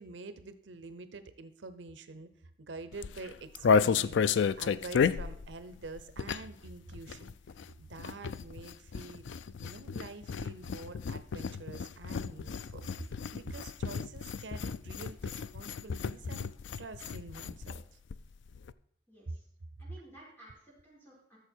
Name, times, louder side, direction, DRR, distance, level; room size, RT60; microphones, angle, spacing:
voice 1, 0.0-2.3 2.6-7.3 7.8-9.3 9.6-16.5 16.8-18.0 19.3-19.4, right 3 dB, 80° right, 12 dB, 0.8 m, -47 dB
sound 1, 2.9-6.7 6.9-17.8 18.1-18.2 18.4-18.7, left 6 dB, 80° left, 0.4 m, -32 dB
voice 2, 19.1-19.4 19.8-21.4, right 2 dB, 10° left, -5 dB, 4.9 m, -55 dB
13.0 x 6.9 x 4.5 m, 0.70 s
head